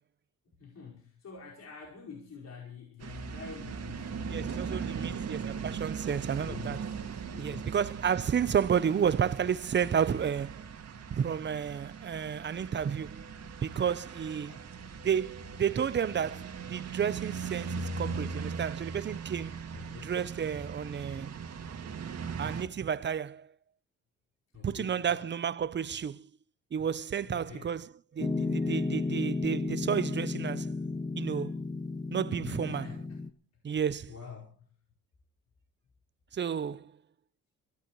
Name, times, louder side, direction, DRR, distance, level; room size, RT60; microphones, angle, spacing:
voice 1, 0.5-5.7 6.0-7.9 8.5-8.6 14.4-14.8 19.7-20.1 24.5-25.3 27.2-27.8 32.4-33.2 34.1-34.7, left 6 dB, 60° left, 5.1 m, -47 dB
sound 1, 3.0-22.6, right 5 dB, 55° right, 2.1 m, -39 dB
voice 2, 4.3-6.8 7.4-10.7 11.1-13.3 13.6-14.6 15.0-19.5 20.0-21.3 22.4-23.5 24.6-26.3 26.7-30.7 31.2-31.6 32.1-32.9 33.6-34.1 36.3-37.0, right 8 dB, 35° right, 0.8 m, -31 dB
Piano, 28.2-33.3, left 3 dB, 15° left, 0.9 m, -33 dB
23.0 x 16.0 x 3.2 m
cardioid pair, 90°, 30 cm